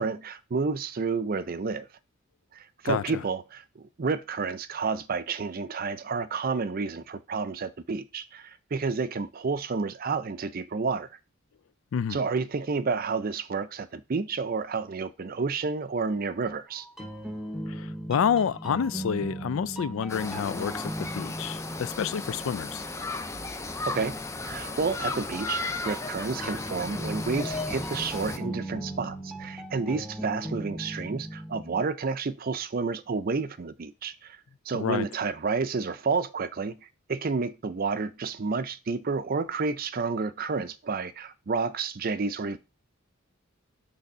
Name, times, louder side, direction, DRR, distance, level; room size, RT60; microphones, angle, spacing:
voice 1, 0.0-1.9 2.5-11.1 12.1-16.9 23.9-34.4 34.7-42.6, right 4 dB, 45° right, 0.5 m, -30 dB
voice 2, 2.8-3.2 11.9-12.2 17.7-22.9 34.7-35.1, left 7 dB, 75° left, 0.4 m, -29 dB
sound 1, 16.8-23.4 25.3-31.8, right 1 dB, ahead, 0.9 m, -38 dB
sound 2, 20.1-28.4, left 3 dB, 15° left, 0.5 m, -35 dB
6.6 x 3.4 x 5.5 m
head